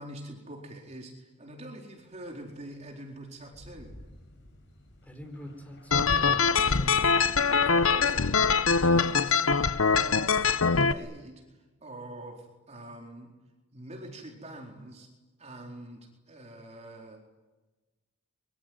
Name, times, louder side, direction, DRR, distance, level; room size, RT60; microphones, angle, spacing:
voice 1, 0.0-3.9 7.7-8.3 8.8-9.4 9.8-13.3 13.7-15.1 15.4-17.3, right 1 dB, 35° right, 1 dB, 4.2 m, -45 dB
Thunder, 3.1-3.2 3.5-9.3, left 1 dB, 55° left, 7.4 m, -48 dB
voice 2, 5.0-7.6, equal, 5° left, 6 dB, 4.2 m, -45 dB
sound 1, 5.9-10.9, left 5 dB, 80° left, 1.0 m, -23 dB
25.5 x 24.0 x 9.4 m, 1.1 s
head